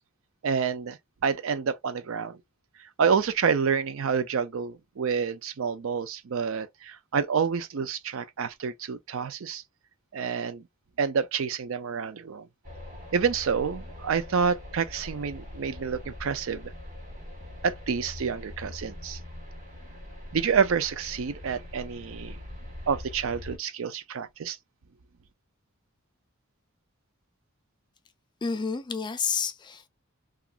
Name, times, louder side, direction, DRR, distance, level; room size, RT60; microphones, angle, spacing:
voice 1, 0.4-2.4 3.0-9.6 10.1-10.6 11.0-12.5 13.1-16.7 17.6-19.2 20.3-22.4 22.9-24.6, right 6 dB, 70° right, 0.5 m, -28 dB
sound 1, 12.6-23.6, left 1 dB, 35° right, 1.3 m, -42 dB
voice 2, 28.4-29.9, left 5 dB, 20° left, 0.3 m, -30 dB
2.9 x 2.4 x 2.3 m
head